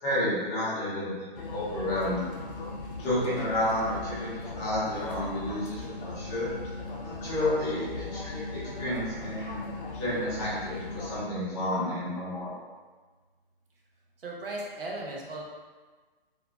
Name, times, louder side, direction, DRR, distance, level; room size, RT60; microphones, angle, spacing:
voice 1, 0.0-2.2 3.0-6.5 7.0-9.6 10.0-12.5, left 1 dB, 15° left, -10 dB, 0.6 m, -31 dB
sound 1, 1.3-11.2, left 2 dB, 65° left, 0.7 m, -38 dB
voice 2, 14.2-15.4, right 2 dB, 70° right, -2 dB, 0.9 m, -36 dB
3.9 x 2.7 x 2.2 m, 1.4 s
hypercardioid pair, 150°, 29 cm